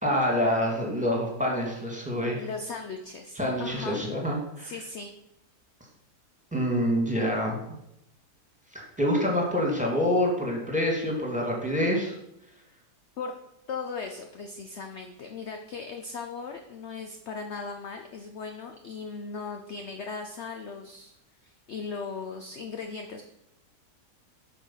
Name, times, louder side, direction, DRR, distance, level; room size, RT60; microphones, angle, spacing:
voice 1, 0.0-2.4 3.4-4.7 6.5-7.6 8.7-12.2, equal, 5° right, -1 dB, 2.1 m, -26 dB
voice 2, 2.4-4.1 4.6-5.1 13.2-13.3 13.7-21.1 21.4-23.2, left 4 dB, 55° left, 4 dB, 0.9 m, -38 dB
8.5 x 5.8 x 5.7 m, 0.82 s
omnidirectional pair, 1.7 m